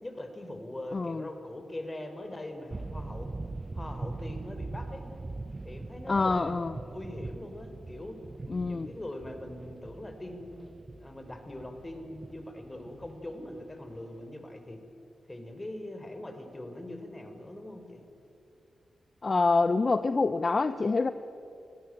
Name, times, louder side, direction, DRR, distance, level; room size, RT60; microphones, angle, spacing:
voice 1, 0.0-3.3 3.7-5.1 5.6-8.2 8.5-10.6 11.0-14.8 15.3-18.0, left 1 dB, 20° left, 6 dB, 3.6 m, -42 dB
voice 2, 0.9-1.3 6.1-6.7 8.5-8.9 19.2-21.1, left 3 dB, 45° left, 12 dB, 0.7 m, -26 dB
sound 1, 2.7-14.2, right 2 dB, 30° right, 0.6 m, -42 dB
22.0 x 15.5 x 8.8 m, 2.7 s
cardioid pair, 55°, 0 cm